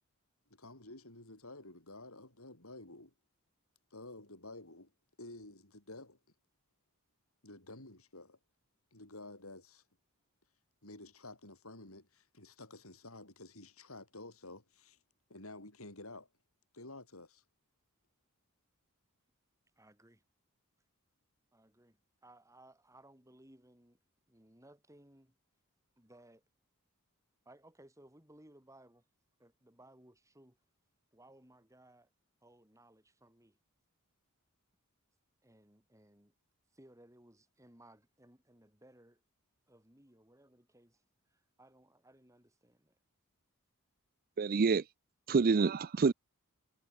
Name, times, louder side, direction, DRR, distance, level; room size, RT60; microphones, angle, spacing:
voice 1, 0.5-3.1 3.9-4.9 5.2-6.2 7.4-8.4 8.9-9.8 10.8-15.0 15.3-16.3 16.7-17.4, left 2 dB, 75° left, 7.4 m, -51 dB
voice 2, 19.8-20.2 21.5-24.0 24.3-25.4 26.0-26.4 27.5-29.0 29.4-30.6 31.1-32.1 32.4-33.6 35.4-36.3 36.7-39.2 39.7-43.0, right 1 dB, 15° right, 7.1 m, -61 dB
voice 3, 44.4-44.8 45.3-46.1, right 4 dB, 40° right, 0.4 m, -27 dB
head